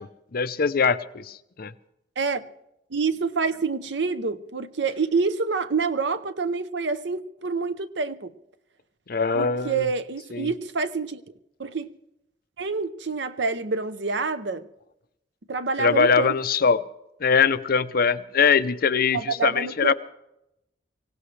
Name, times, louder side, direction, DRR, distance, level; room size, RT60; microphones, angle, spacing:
voice 1, 0.3-1.2 1.6-1.7 9.1-9.8 10.3-10.5 15.8-16.8 17.2-19.9, left 5 dB, 55° left, 0.6 m, -22 dB
voice 2, 2.2-2.5 2.9-8.3 9.3-11.2 11.6-11.9 12.6-14.7 15.5-16.4 19.1-19.9, right 4 dB, 65° right, 0.8 m, -27 dB
24.0 x 17.0 x 3.3 m
head